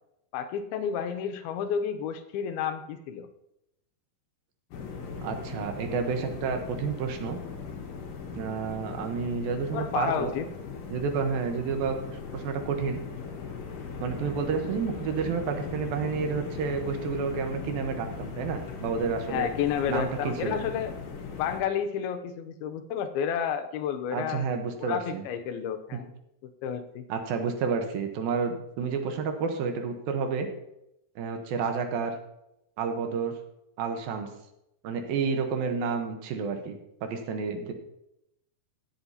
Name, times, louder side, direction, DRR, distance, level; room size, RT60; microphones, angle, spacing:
voice 1, 0.3-3.3 9.7-10.5 19.3-20.9 21.3-24.5 24.8-26.1 26.4-27.0, left 8 dB, 85° left, 8 dB, 2.7 m, -31 dB
sound 1, 4.7-21.6, left 5 dB, 65° left, 3.0 m, -39 dB
voice 2, 5.2-7.4 8.4-10.3 10.9-13.0 14.0-19.5 19.9-20.6 24.1-25.2 27.1-30.5 31.2-32.1 32.8-33.3 33.8-34.3 34.8-37.7, right 5 dB, 75° right, 5 dB, 2.8 m, -30 dB
17.5 x 7.8 x 2.8 m, 0.83 s
omnidirectional pair, 4.4 m